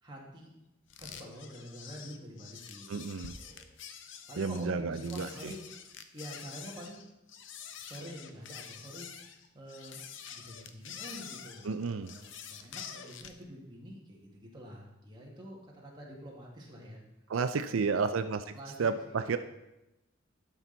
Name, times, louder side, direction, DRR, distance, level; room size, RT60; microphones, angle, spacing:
voice 1, 0.0-0.5 1.0-3.7 4.3-5.6 6.1-7.0 7.8-9.1 9.5-10.0 10.3-11.7 12.0-17.0 17.6-18.2 18.5-18.8 19.1-19.4, equal, 20° right, -3 dB, 1.9 m, -47 dB
sound 1, 0.9-13.4, left 7 dB, 65° left, 0.7 m, -47 dB
voice 2, 2.9-3.3 4.4-5.5 11.6-12.1 17.3-18.5 18.8-19.4, right 5 dB, 85° right, 10 dB, 0.5 m, -31 dB
12.5 x 6.0 x 4.0 m, 0.93 s
head